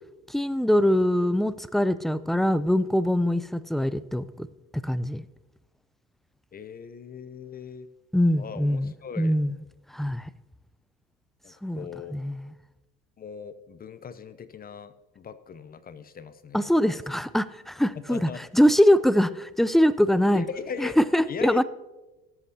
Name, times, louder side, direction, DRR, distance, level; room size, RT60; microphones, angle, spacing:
voice 1, 0.3-4.5 4.8-5.2 8.1-9.6 9.9-10.3 11.6-11.9 12.1-12.5 16.5-20.4 20.8-21.6, equal, ahead, 16 dB, 0.5 m, -23 dB
voice 2, 6.5-7.9 8.4-9.4 11.4-12.2 13.2-17.0 18.1-18.4 20.3-21.0 21.3-21.6, left 6 dB, 30° left, 13 dB, 0.7 m, -38 dB
19.0 x 8.3 x 2.8 m, 1.1 s
hypercardioid pair, 75°, 29 cm